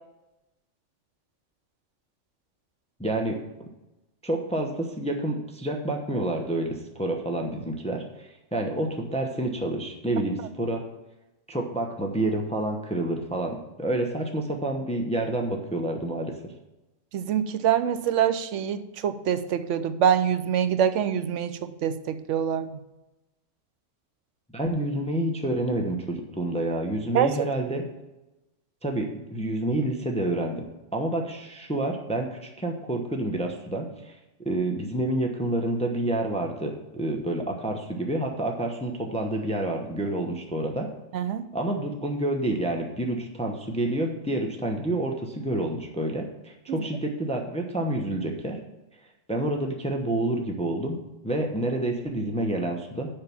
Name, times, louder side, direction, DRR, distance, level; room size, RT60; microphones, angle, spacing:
voice 1, 3.0-3.7 4.2-10.8 11.5-16.3 24.5-27.8 28.8-30.7 30.9-34.2 34.4-40.9 41.5-48.6 49.3-51.0 51.2-53.1, right 1 dB, 5° left, 2 dB, 0.8 m, -28 dB
voice 2, 17.1-22.8 27.1-27.5 41.1-41.5 46.7-46.8, right 8 dB, 80° right, 11 dB, 1.0 m, -25 dB
6.7 x 5.7 x 7.1 m, 1.0 s
omnidirectional pair, 1.2 m